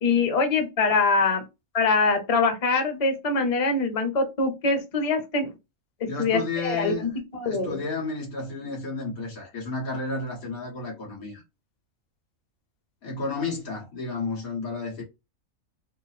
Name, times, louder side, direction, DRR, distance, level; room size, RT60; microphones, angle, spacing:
voice 1, 0.0-1.4 1.7-5.5 6.2-7.8, left 4 dB, 35° left, 0.7 m, -24 dB
voice 2, 6.1-7.1 7.4-11.4 13.0-15.0, left 3 dB, 90° left, 2.1 m, -32 dB
3.8 x 2.0 x 4.1 m
omnidirectional pair, 1.4 m